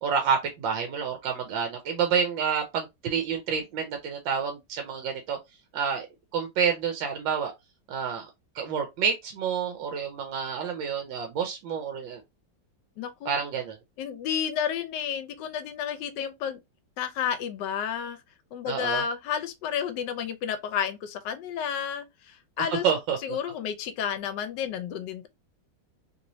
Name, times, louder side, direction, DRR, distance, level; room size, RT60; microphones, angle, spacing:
voice 1, 0.0-5.4 5.7-6.1 6.3-7.5 7.9-8.3 8.6-12.2 13.2-13.7 18.7-19.0 22.8-23.2, right 6 dB, 90° right, 1.4 m, -28 dB
voice 2, 13.0-13.4 14.0-16.6 17.0-18.2 18.5-22.9 23.2-25.3, left 8 dB, 75° left, 1.2 m, -31 dB
3.3 x 3.0 x 2.6 m
omnidirectional pair, 2.0 m